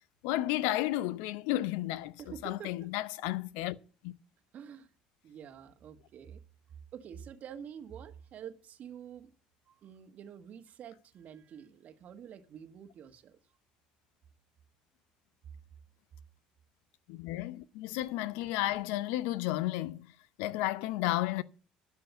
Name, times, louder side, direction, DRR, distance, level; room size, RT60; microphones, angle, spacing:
voice 1, 0.2-3.8 4.0-4.1 17.1-20.1 20.4-21.4, left 15 dB, 80° left, 0.7 m, -32 dB
voice 2, 2.2-2.9 4.5-4.9 5.2-6.4 6.9-9.3 9.7-13.4, right 8 dB, 55° right, 1.6 m, -48 dB
12.0 x 5.8 x 8.2 m
hypercardioid pair, 70°, 3 cm